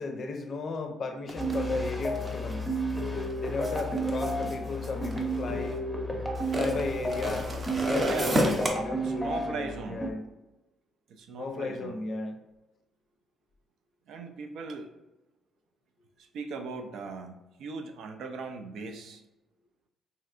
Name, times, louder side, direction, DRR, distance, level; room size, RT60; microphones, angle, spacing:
voice 1, 0.0-2.7 3.3-5.8 6.5-7.5 7.8-10.2 11.3-12.4, left 3 dB, 55° left, 6 dB, 0.4 m, -35 dB
sound 1, 1.3-5.7 6.3-8.7, equal, 30° right, 0.6 m, -32 dB
sound 2, 1.4-10.1, right 1 dB, 10° left, 0.6 m, -32 dB
voice 2, 7.8-8.6 9.0-10.1 11.1-12.0 14.1-14.9 16.2-19.2, right 4 dB, 75° right, 5 dB, 0.3 m, -39 dB
3.1 x 2.7 x 2.4 m, 1.0 s
cardioid pair, 90°, 0 cm